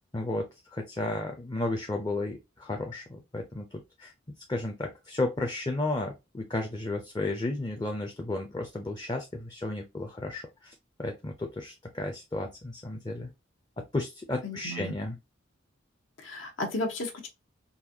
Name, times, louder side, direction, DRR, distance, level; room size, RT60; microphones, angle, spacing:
voice 1, 0.1-4.1 4.5-10.7 11.0-13.3 13.9-15.2, left 2 dB, 20° left, 0.5 m, -33 dB
voice 2, 14.4-14.9 16.2-17.3, left 2 dB, 75° left, 1.0 m, -34 dB
4.0 x 2.6 x 2.7 m
head